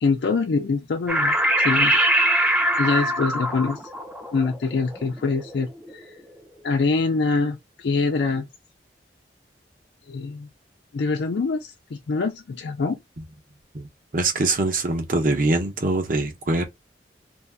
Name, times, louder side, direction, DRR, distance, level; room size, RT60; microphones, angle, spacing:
voice 1, 0.0-2.0 2.8-3.8 4.3-5.7 5.9-6.1 6.6-8.5 10.1-10.5 10.9-13.0, left 4 dB, 70° left, 0.4 m, -24 dB
sound 1, 1.1-5.9, right 1 dB, 5° right, 0.6 m, -23 dB
voice 2, 14.1-16.6, right 2 dB, 50° right, 0.8 m, -23 dB
2.6 x 2.2 x 3.3 m
head